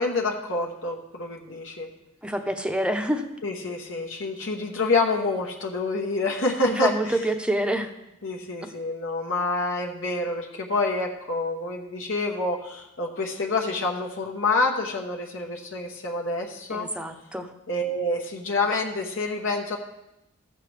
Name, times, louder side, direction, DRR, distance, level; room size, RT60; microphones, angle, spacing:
voice 1, 0.0-1.9 3.4-7.2 8.2-16.9 17.7-19.8, left 2 dB, 70° left, 0 dB, 1.1 m, -27 dB
voice 2, 2.2-3.3 6.7-7.9 8.6-8.7 16.7-17.5, right 1 dB, 5° right, 6 dB, 0.6 m, -27 dB
14.5 x 6.6 x 3.3 m, 0.91 s
head